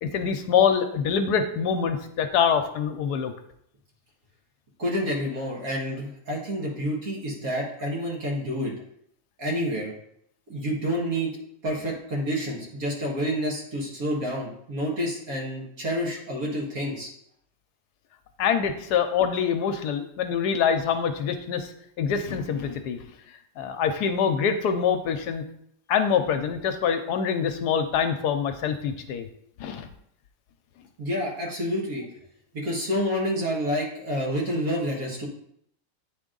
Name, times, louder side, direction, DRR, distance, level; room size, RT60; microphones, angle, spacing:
voice 1, 0.0-3.3 18.4-21.7 22.0-23.0 23.6-25.4 25.9-29.3 29.6-29.9, left 7 dB, 75° left, 8 dB, 1.1 m, -25 dB
voice 2, 4.8-8.7 9.4-9.9 10.5-11.3 11.6-17.1 31.0-32.0 32.5-35.3, equal, 60° right, -2 dB, 2.1 m, -28 dB
9.1 x 3.5 x 3.8 m, 0.71 s
omnidirectional pair, 1.8 m